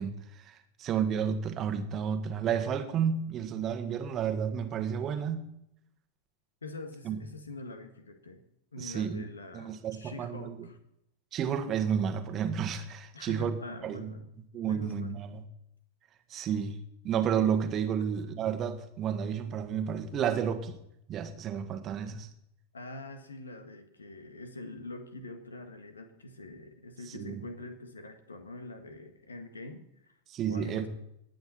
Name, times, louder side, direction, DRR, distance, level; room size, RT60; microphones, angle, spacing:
voice 1, 0.0-5.5 7.0-7.2 8.8-9.2 9.5-10.7 11.3-14.1 14.5-15.4 16.3-16.8 17.0-20.8 21.1-22.3 27.1-27.4 30.3-30.9, right 7 dB, 30° right, 1.5 m, -31 dB
voice 2, 6.6-8.4 8.7-10.8 13.1-14.3 14.6-15.1 22.7-30.1 30.5-30.9, left 2 dB, 75° left, 1.8 m, -44 dB
19.5 x 8.6 x 4.4 m
figure-of-eight pair, 90°, 0 cm